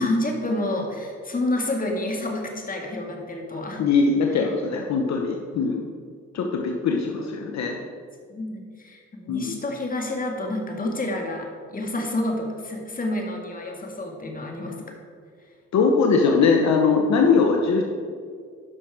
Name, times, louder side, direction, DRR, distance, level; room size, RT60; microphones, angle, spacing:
voice 1, 0.0-3.8 8.3-14.9, left 1 dB, 30° left, 1 dB, 1.9 m, -29 dB
voice 2, 3.8-5.8 6.3-7.8 9.3-9.6 15.7-17.8, left 4 dB, 65° left, 2 dB, 1.0 m, -21 dB
11.0 x 5.9 x 4.8 m, 2.1 s
cardioid pair, 90°, 30 cm